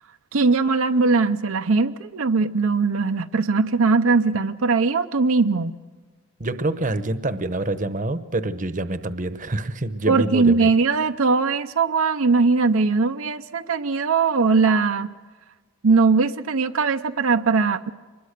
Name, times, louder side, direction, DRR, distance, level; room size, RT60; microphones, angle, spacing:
voice 1, 0.3-5.7 10.1-15.1 15.8-17.9, right 4 dB, 75° right, 7 dB, 0.7 m, -20 dB
voice 2, 6.4-10.7, right 2 dB, 35° right, 12 dB, 0.9 m, -26 dB
25.0 x 21.5 x 6.7 m, 1.4 s
head